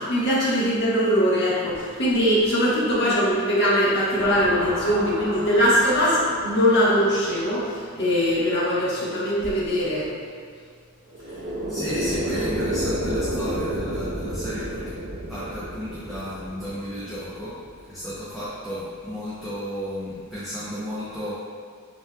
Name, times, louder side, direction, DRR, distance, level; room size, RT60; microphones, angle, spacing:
voice 1, 0.0-10.1, equal, 55° left, -8 dB, 1.3 m, -21 dB
sound 1, 4.2-8.1 11.1-18.3, right 1 dB, 65° right, 1.0 m, -31 dB
voice 2, 11.7-15.0 15.3-17.5 17.9-21.3, equal, ahead, -12 dB, 0.8 m, -33 dB
6.9 x 3.1 x 2.3 m, 2.1 s
head